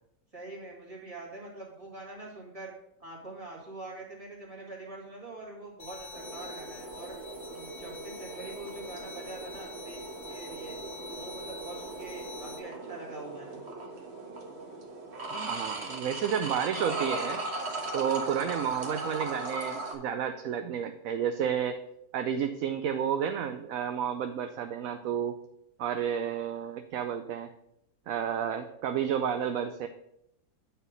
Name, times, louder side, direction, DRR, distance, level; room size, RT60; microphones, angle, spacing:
voice 1, 0.3-2.7 3.0-7.2 7.5-10.8 11.1-13.6, right 2 dB, 20° right, -3 dB, 2.2 m, -44 dB
sound 1, 5.8-12.6, left 3 dB, 60° left, 1.5 m, -46 dB
sound 2, 6.1-19.9, right 2 dB, 45° right, 1.4 m, -38 dB
voice 2, 15.3-17.4 17.9-21.8 22.1-25.4 25.8-27.5 28.1-29.9, right 8 dB, 70° right, 8 dB, 0.9 m, -31 dB
9.0 x 4.5 x 5.1 m, 0.78 s
omnidirectional pair, 1.7 m